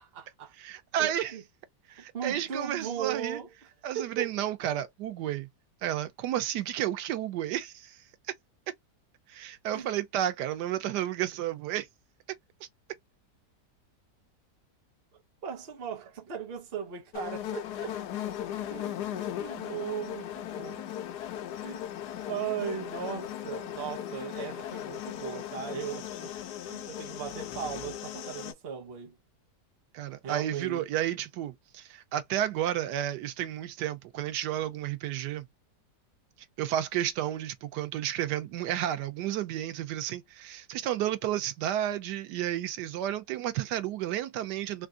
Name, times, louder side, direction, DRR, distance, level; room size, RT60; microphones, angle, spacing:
voice 1, 0.0-0.5 1.0-1.4 1.9-3.5 3.9-4.4 9.7-9.9 15.4-18.0 18.7-20.9 21.5-21.9 22.3-26.3 26.6-29.2 30.2-30.8, right 8 dB, 40° right, 1.1 m, -38 dB
voice 2, 0.6-1.3 1.9-3.4 3.8-5.5 5.8-8.0 9.3-11.9 29.9-35.5 36.6-44.9, right 12 dB, 90° right, 1.2 m, -32 dB
sound 1, 17.1-28.5, left 11 dB, 75° left, 1.2 m, -37 dB
3.3 x 2.5 x 2.4 m
omnidirectional pair, 1.8 m